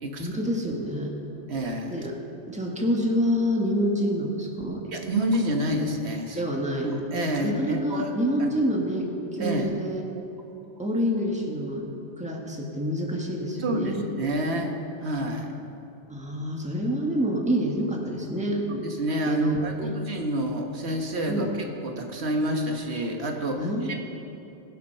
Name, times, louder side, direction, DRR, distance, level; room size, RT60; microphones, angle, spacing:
voice 1, 0.2-1.2 1.9-2.2 2.5-4.9 6.4-6.9 7.4-9.1 9.4-10.1 10.8-11.9 12.2-14.0 16.1-18.8 19.3-20.0 21.3-21.5 23.6-23.9, equal, 5° right, -1 dB, 1.6 m, -27 dB
voice 2, 1.5-2.1 4.9-6.4 6.8-8.1 9.4-9.7 13.6-15.5 18.7-21.5 21.8-23.9, right 1 dB, 85° right, 3 dB, 1.6 m, -28 dB
22.0 x 7.5 x 5.5 m, 2.8 s
omnidirectional pair, 1.1 m